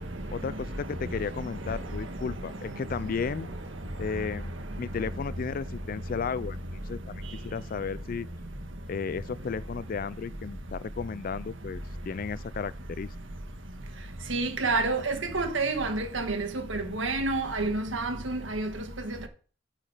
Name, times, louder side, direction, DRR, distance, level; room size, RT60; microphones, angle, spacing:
voice 1, 0.3-3.5 4.0-8.3 8.9-13.1, left 5 dB, 45° left, 0.4 m, -34 dB
voice 2, 14.3-19.3, right 3 dB, 75° right, 1.7 m, -29 dB
9.1 x 7.5 x 5.0 m
head